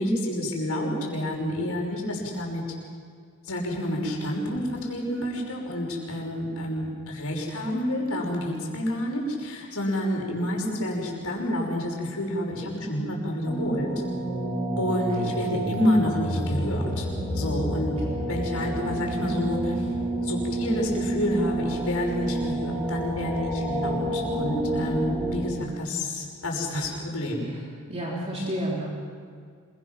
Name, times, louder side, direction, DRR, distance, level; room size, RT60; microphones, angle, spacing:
voice 1, 0.0-2.6 3.4-13.9 14.8-18.0 18.2-19.9 20.2-27.5, left 1 dB, 75° left, -1 dB, 5.8 m, -29 dB
sound 1, 13.4-25.5, right 1 dB, 10° right, 4.9 m, -29 dB
voice 2, 27.9-28.9, right 1 dB, 30° right, -5 dB, 3.6 m, -31 dB
26.5 x 23.0 x 6.1 m, 2.1 s
head